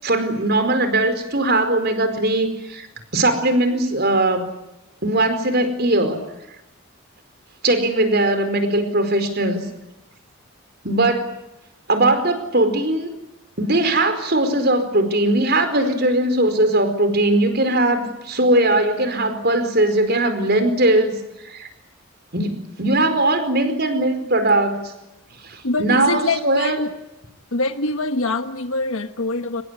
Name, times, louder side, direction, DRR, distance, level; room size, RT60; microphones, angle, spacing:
voice 1, 0.0-2.9 3.1-4.4 5.0-6.2 7.6-9.6 10.8-11.4 11.9-13.1 13.6-21.1 21.4-21.7 22.3-24.8 25.4-26.8, right 1 dB, 45° right, 9 dB, 4.7 m, -19 dB
voice 2, 25.6-26.9 27.5-29.6, left 2 dB, 70° left, 8 dB, 1.3 m, -24 dB
25.0 x 21.0 x 9.9 m, 0.91 s
head